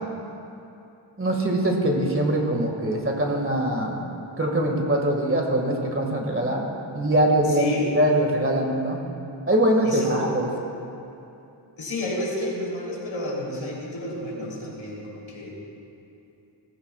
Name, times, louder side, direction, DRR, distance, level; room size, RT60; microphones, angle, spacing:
voice 1, 1.2-4.0 4.4-6.7 6.9-7.7 7.9-9.0 9.5-10.5, right 1 dB, 25° right, 0 dB, 1.9 m, -22 dB
voice 2, 7.5-7.9 9.8-10.2 11.8-15.5, left 1 dB, 80° left, -5 dB, 3.4 m, -30 dB
18.0 x 15.5 x 2.4 m, 2.8 s
wide cardioid pair, 80°, 47 cm